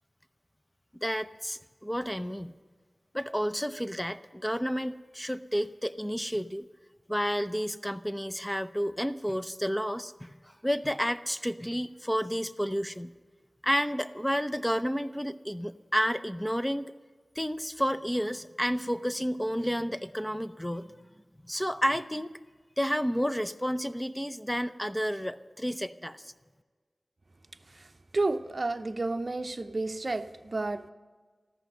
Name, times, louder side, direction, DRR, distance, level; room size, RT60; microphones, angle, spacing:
voice 1, 1.0-2.6 3.1-6.7 7.1-10.3 10.6-13.1 13.6-16.9 17.4-20.9 21.5-22.3 22.8-26.3, equal, 10° left, 0.6 m, -31 dB
voice 2, 28.1-30.9, right 2 dB, 50° right, 0.6 m, -31 dB
14.5 x 13.5 x 6.7 m
wide cardioid pair, 60°, 0 cm